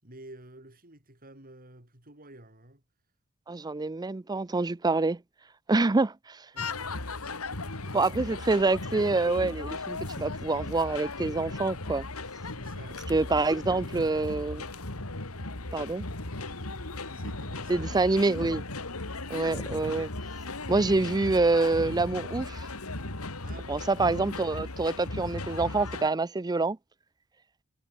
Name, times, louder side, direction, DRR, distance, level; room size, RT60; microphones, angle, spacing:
voice 1, 0.0-2.8 6.5-6.8 7.1-7.4 7.8-8.4 12.5-14.1 16.9-18.9 23.4-23.9, right 1 dB, 40° right, 7.7 m, -51 dB
voice 2, 3.5-5.2 5.7-6.5 7.9-12.1 13.1-14.6 15.7-16.0 17.7-18.6 19.3-20.1 20.7-22.7 23.7-26.8, right 3 dB, 20° right, 0.5 m, -26 dB
sound 1, 6.6-26.1, left 2 dB, 80° left, 2.9 m, -37 dB
head